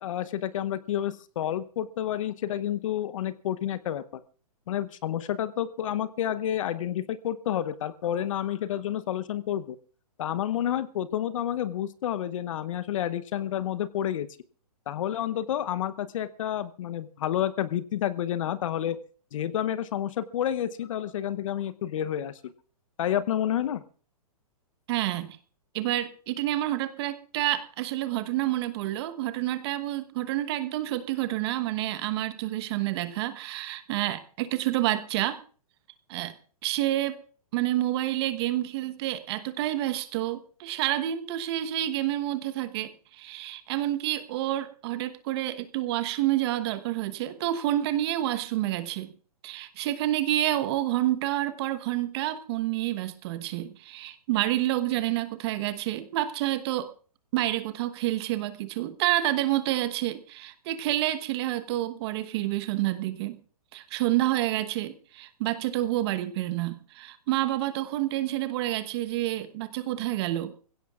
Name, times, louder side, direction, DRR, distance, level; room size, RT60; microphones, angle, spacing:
voice 1, 0.0-4.0 4.7-9.8 10.2-14.3 14.9-19.0 19.3-22.5 23.0-23.8, left 11 dB, 55° left, 0.9 m, -29 dB
voice 2, 24.9-25.4 25.7-35.4 36.1-36.3 36.6-37.2 37.5-49.1 49.4-56.9 57.3-63.4 63.7-70.5, right 14 dB, 40° right, 1.1 m, -28 dB
24.5 x 16.0 x 2.4 m
hypercardioid pair, 130°, 20 cm